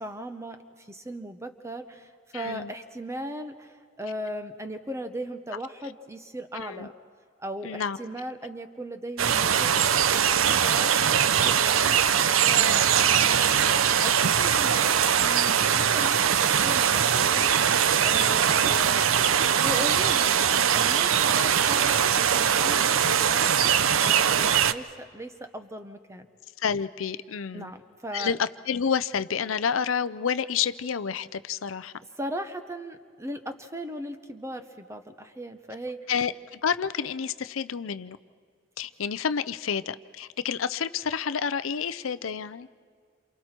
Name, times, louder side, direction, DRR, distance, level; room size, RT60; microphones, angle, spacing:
voice 1, 0.0-6.9 7.4-12.0 12.5-17.5 18.0-23.7 24.0-26.3 27.5-28.4 32.2-36.1, right 1 dB, 15° right, 7 dB, 1.0 m, -38 dB
voice 2, 2.3-2.7 6.5-6.9 7.6-8.0 12.5-12.8 26.6-27.7 28.1-31.9 36.1-38.2 38.8-42.7, left 7 dB, 80° left, 15 dB, 0.6 m, -29 dB
sound 1, 9.2-24.7, right 8 dB, 85° right, 0.6 m, -22 dB
28.5 x 28.0 x 4.5 m, 2.1 s
head